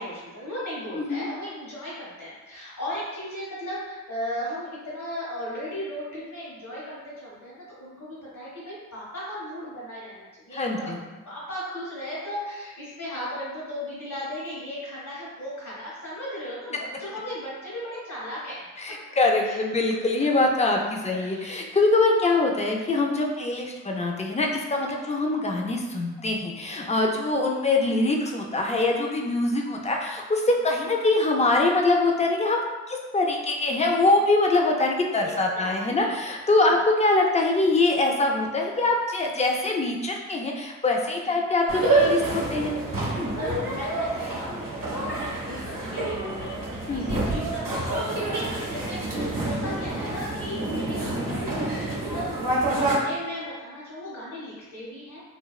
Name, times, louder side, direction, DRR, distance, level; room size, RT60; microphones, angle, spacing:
voice 1, 0.0-18.6 19.4-19.6 20.2-20.3 21.1-21.5 24.9-25.1 26.9-27.1 35.2-36.2 40.1-40.2 41.2-41.3 43.2-46.6 46.9-55.2, equal, 70° left, -9 dB, 0.8 m, -36 dB
voice 2, 0.9-1.3 10.5-11.0 18.8-32.6 32.9-42.7 46.9-47.2, left 2 dB, 20° left, 1 dB, 0.4 m, -23 dB
sound 1, 41.7-53.0, right 2 dB, 90° right, 0.6 m, -27 dB
2.7 x 2.1 x 2.3 m, 1.2 s
cardioid pair, 55°, 32 cm